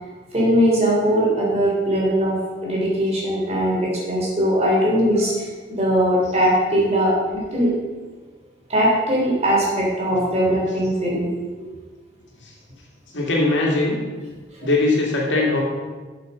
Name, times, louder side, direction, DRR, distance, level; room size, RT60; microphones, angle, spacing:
voice 1, 0.3-7.7 8.7-11.3 11.6-11.7 14.5-14.7, equal, 35° right, -4 dB, 3.0 m, -20 dB
voice 2, 13.1-14.0 14.6-15.6, left 2 dB, 80° left, -2 dB, 2.3 m, -20 dB
8.3 x 6.8 x 5.6 m, 1.3 s
head